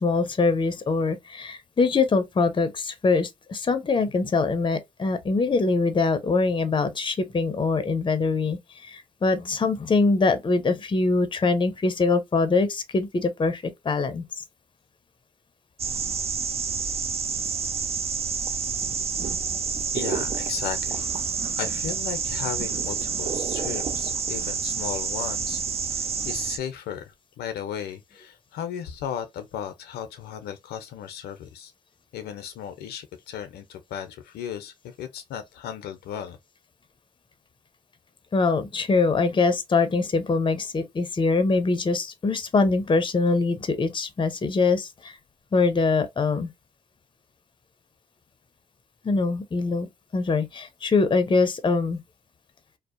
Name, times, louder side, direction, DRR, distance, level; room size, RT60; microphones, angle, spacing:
voice 1, 0.0-14.2 38.3-45.2 45.5-46.5 49.0-52.0, left 3 dB, 30° left, 0.6 m, -23 dB
sound 1, 15.8-26.6, right 6 dB, 40° right, 0.5 m, -28 dB
voice 2, 19.9-21.1 21.6-25.6 25.9-31.7 32.1-36.4, left 9 dB, 80° left, 0.5 m, -35 dB
2.6 x 2.0 x 2.4 m
supercardioid pair, 55°, 17 cm